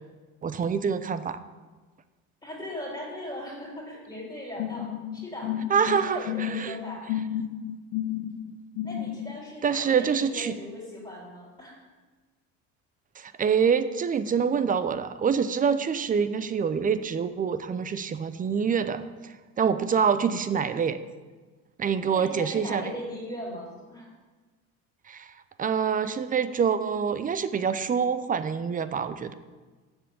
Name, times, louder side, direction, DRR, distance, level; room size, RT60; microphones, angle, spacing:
voice 1, 0.4-1.4 5.7-6.8 9.6-10.5 13.2-21.0 21.8-22.9 25.1-25.3 25.6-29.3, right 6 dB, 25° right, 12 dB, 0.6 m, -26 dB
voice 2, 2.4-5.5 5.9-7.1 8.8-11.8 22.1-24.1, left 1 dB, 15° left, -4 dB, 3.6 m, -39 dB
sound 1, 4.6-9.4, left 10 dB, 80° left, 0.6 m, -32 dB
7.2 x 6.9 x 6.9 m, 1.3 s
cardioid pair, 105°, 31 cm